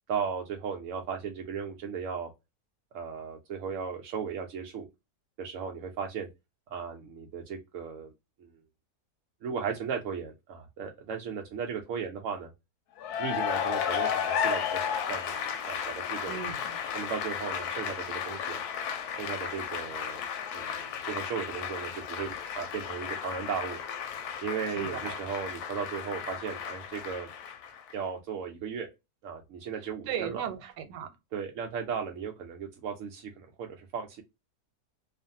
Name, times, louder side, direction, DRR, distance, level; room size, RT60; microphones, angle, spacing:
voice 1, 0.1-2.3 2.9-4.9 5.4-6.3 6.7-8.1 8.4-8.5 9.4-12.5 13.2-16.4 16.9-18.6 19.2-20.2 20.5-23.8 24.4-27.3 27.9-28.9 29.2-30.4 31.3-34.2, right 6 dB, 70° right, 0.7 m, -36 dB
Cheering / Applause, 13.0-27.9, left 8 dB, 75° left, 1.0 m, -34 dB
voice 2, 16.3-16.8 24.8-25.2 30.1-31.1, right 9 dB, 90° right, 1.2 m, -36 dB
2.5 x 2.5 x 2.6 m
omnidirectional pair, 1.8 m